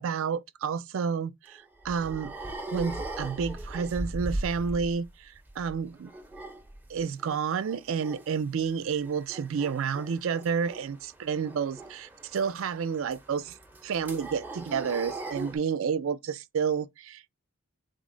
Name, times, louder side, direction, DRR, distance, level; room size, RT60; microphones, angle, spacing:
voice 1, 0.0-2.3 2.7-6.1 6.9-13.6 13.8-17.2, right 6 dB, 70° right, 0.4 m, -30 dB
sound 1, 1.5-5.1 5.4-7.4 7.6-8.3 8.6-15.6, right 2 dB, 10° right, 0.5 m, -39 dB
3.9 x 2.0 x 3.7 m
head